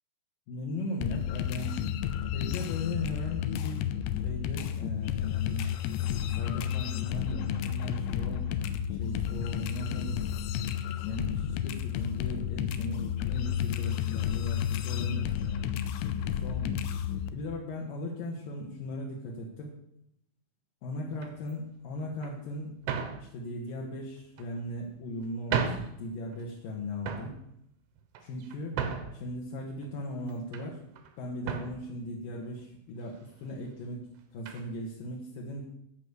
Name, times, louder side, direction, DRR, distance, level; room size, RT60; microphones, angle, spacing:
voice 1, 0.5-1.9 2.3-3.8 4.1-5.7 6.2-10.3 11.0-16.8 17.3-19.8 20.8-27.4 28.2-28.8 29.1-30.8 31.2-35.6, left 1 dB, 65° left, -3 dB, 2.3 m, -38 dB
kangaroo beatdown, 1.0-17.3, left 10 dB, 85° left, 2.8 m, -32 dB
sound 1, 21.1-21.5 22.2-22.3 22.8-23.2 24.2-24.8 25.2-25.3 25.5-25.9 26.3-26.7 27.0-27.3 28.0-29.2 29.8-30.7 31.0-31.1 31.4-31.8 32.6-32.7 33.0-33.2 34.5-34.7, right 7 dB, 75° right, 2.5 m, -34 dB
13.5 x 5.3 x 8.2 m, 0.76 s
omnidirectional pair, 5.9 m